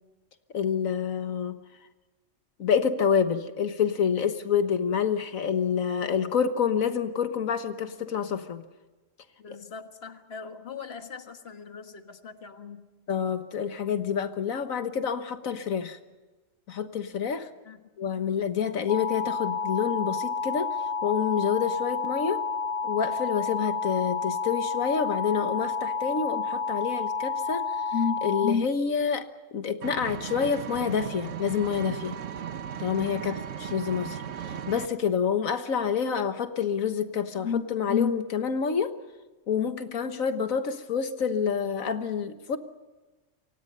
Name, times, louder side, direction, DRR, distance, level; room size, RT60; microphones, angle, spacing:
voice 1, 0.5-1.6 2.6-8.6 13.1-16.0 16.7-17.5 18.0-22.4 22.8-29.3 29.5-32.2 32.8-34.2 34.7-38.9 39.5-42.6, left 7 dB, 90° left, 9 dB, 1.7 m, -27 dB
voice 2, 9.4-12.8 17.7-17.9 33.1-33.4, left 5 dB, 50° left, 7 dB, 1.8 m, -42 dB
sound 1, 18.9-28.5, left 4 dB, 65° left, 1.3 m, -30 dB
Engine, 29.8-34.9, right 8 dB, 65° right, 1.3 m, -36 dB
28.5 x 25.0 x 5.4 m, 1.2 s
omnidirectional pair, 1.4 m